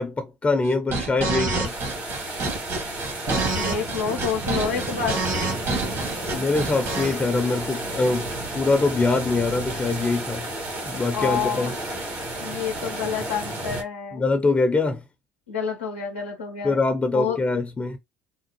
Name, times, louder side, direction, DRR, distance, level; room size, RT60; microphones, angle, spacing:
voice 1, 0.0-1.7 6.2-10.5 10.9-11.8 14.1-15.0 16.6-18.0, left 3 dB, 20° left, 0.6 m, -23 dB
sound 1, 0.6-7.1, right 3 dB, 50° right, 1.5 m, -27 dB
sound 2, 1.6-13.8, right 1 dB, 70° right, 1.7 m, -32 dB
voice 2, 3.5-5.2 11.1-11.8 12.4-14.2 15.5-16.8 17.1-17.4, left 6 dB, 90° left, 0.6 m, -28 dB
3.5 x 2.0 x 3.0 m
hypercardioid pair, 65°, 6 cm